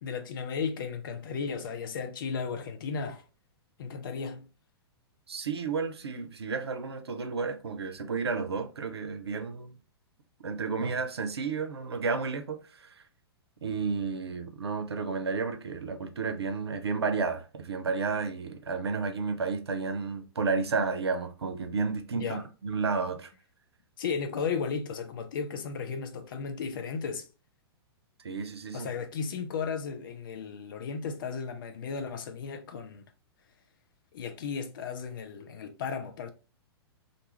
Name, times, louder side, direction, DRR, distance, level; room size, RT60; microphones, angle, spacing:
voice 1, 0.0-3.2 3.8-4.5 22.1-22.4 24.0-27.3 28.7-33.0 34.1-36.3, left 5 dB, 55° left, 0.6 m, -35 dB
voice 2, 5.3-9.7 10.4-12.6 13.6-23.3 28.2-28.9, right 4 dB, 75° right, 0.6 m, -32 dB
2.6 x 2.3 x 2.9 m
figure-of-eight pair, 105°, 14 cm